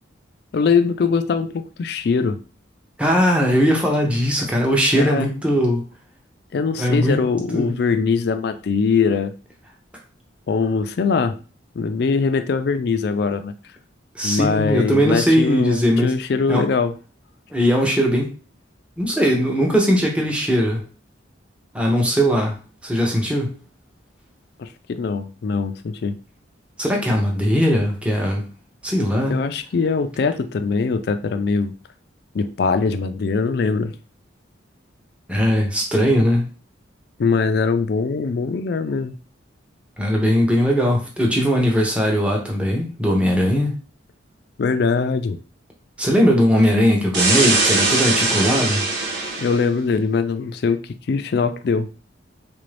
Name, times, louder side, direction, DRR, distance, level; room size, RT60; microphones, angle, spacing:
voice 1, 0.5-2.4 4.9-5.3 6.5-9.3 10.5-11.4 11.8-13.5 14.2-16.9 24.6-26.2 29.3-31.7 32.3-33.9 37.2-39.1 44.6-45.4 49.4-50.8 51.1-51.9, left 5 dB, 55° left, 10 dB, 0.3 m, -21 dB
voice 2, 3.0-5.8 6.8-7.2 7.5-7.7 14.1-16.1 16.5-16.7 17.5-18.3 19.0-20.8 21.7-23.5 26.8-28.4 28.8-29.4 35.3-36.5 40.0-43.7 46.0-48.8, equal, 5° right, 0 dB, 0.7 m, -19 dB
sound 1, 47.1-49.6, right 3 dB, 65° right, 1.0 m, -20 dB
3.7 x 2.6 x 3.2 m, 0.35 s
head